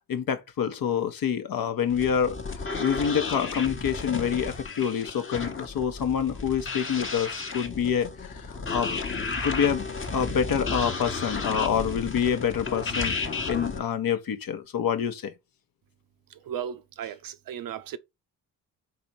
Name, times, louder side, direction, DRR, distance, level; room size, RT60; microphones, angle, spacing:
voice 1, 0.1-9.0 9.4-15.3, left 8 dB, 50° left, 0.9 m, -27 dB
sound 1, 1.9-13.8, left 4 dB, 30° left, 1.1 m, -33 dB
voice 2, 16.3-18.0, right 9 dB, 50° right, 0.6 m, -36 dB
4.0 x 2.9 x 4.6 m
hypercardioid pair, 40°, 44 cm